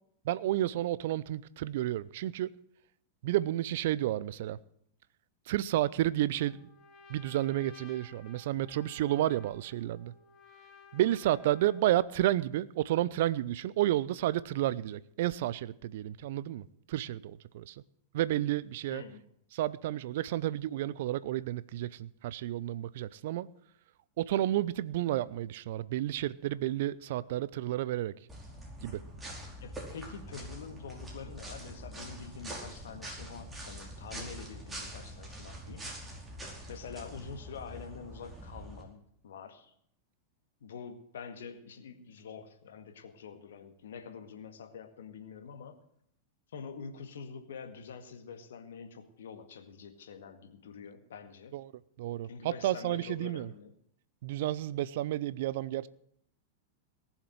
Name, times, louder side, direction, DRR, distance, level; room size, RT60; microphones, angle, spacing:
voice 1, 0.2-2.5 3.2-4.6 5.5-6.6 7.1-10.1 10.9-17.8 18.1-19.0 19.5-23.5 24.2-28.1 28.8-29.0 51.5-51.7 52.0-53.5 54.2-55.9, right 14 dB, 60° right, 0.6 m, -31 dB
Trumpet, 6.3-12.0, left 5 dB, 35° left, 2.7 m, -56 dB
voice 2, 18.9-19.2 29.6-35.9 36.7-39.7 40.6-45.8 46.5-51.6 52.3-53.7, left 6 dB, 70° left, 1.9 m, -46 dB
sound 1, 28.3-38.8, right 1 dB, 15° right, 4.9 m, -44 dB
18.5 x 7.3 x 8.0 m
figure-of-eight pair, 95°, 0 cm